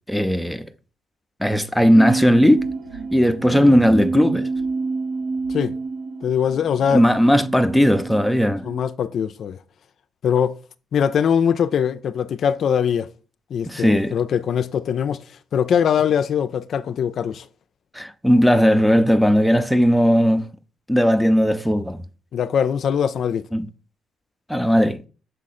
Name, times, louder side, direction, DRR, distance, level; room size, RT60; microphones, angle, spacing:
voice 1, 0.1-0.6 1.4-2.7 3.1-4.5 6.9-8.6 13.7-14.2 17.9-20.4 20.9-22.0 23.5-23.7 24.5-25.0, equal, ahead, 0.5 m, -17 dB
sound 1, 1.9-8.9, right 4 dB, 80° right, 0.8 m, -28 dB
voice 2, 6.2-7.0 8.6-9.6 10.2-10.6 10.9-13.1 13.5-17.5 22.3-23.5, left 8 dB, 60° left, 0.4 m, -22 dB
6.8 x 3.7 x 4.1 m
cardioid pair, 90°, 0 cm